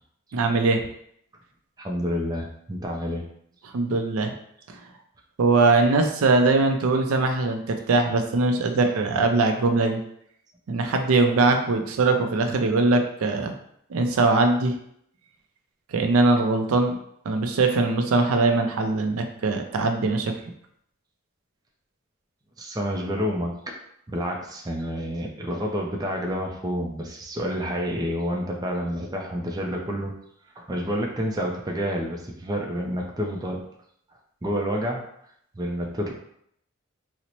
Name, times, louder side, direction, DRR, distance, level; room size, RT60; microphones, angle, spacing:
voice 1, 0.3-0.8 3.7-4.3 4.7-4.8 5.4-10.0 10.7-13.5 13.9-14.8 15.9-17.0 17.3-20.3, right 3 dB, 85° right, 5 dB, 0.4 m, -21 dB
voice 2, 1.8-3.3 22.6-23.7 24.1-30.1 30.6-33.6 34.4-35.0 35.5-36.1, equal, 20° right, 0 dB, 0.4 m, -29 dB
3.9 x 2.1 x 2.9 m, 0.70 s
head